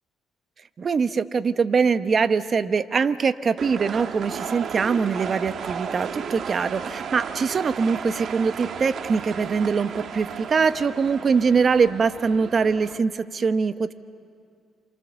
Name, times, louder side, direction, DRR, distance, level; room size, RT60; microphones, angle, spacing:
voice 1, 0.8-13.9, right 5 dB, 40° right, 12 dB, 0.9 m, -23 dB
sound 1, 3.6-13.0, right 7 dB, 55° right, 1.3 m, -34 dB
27.5 x 27.5 x 7.0 m, 2.3 s
cardioid pair, 95°, 0 cm